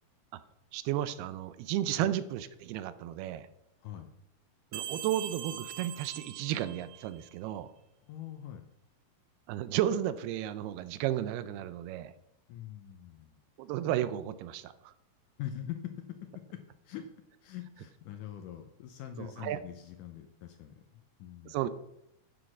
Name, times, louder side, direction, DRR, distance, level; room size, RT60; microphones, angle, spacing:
voice 1, 0.7-3.5 4.7-7.7 9.5-12.1 13.6-14.9 19.2-19.6 21.5-21.7, right 12 dB, 90° right, 14 dB, 2.6 m, -33 dB
sound 1, 4.7-7.3, right 11 dB, 75° right, 2.0 m, -42 dB
voice 2, 8.0-8.6 12.5-13.4 15.4-16.6 16.8-17.1 17.4-21.6, left 11 dB, 75° left, 6 dB, 1.9 m, -43 dB
9.9 x 6.4 x 6.0 m, 0.82 s
omnidirectional pair, 4.5 m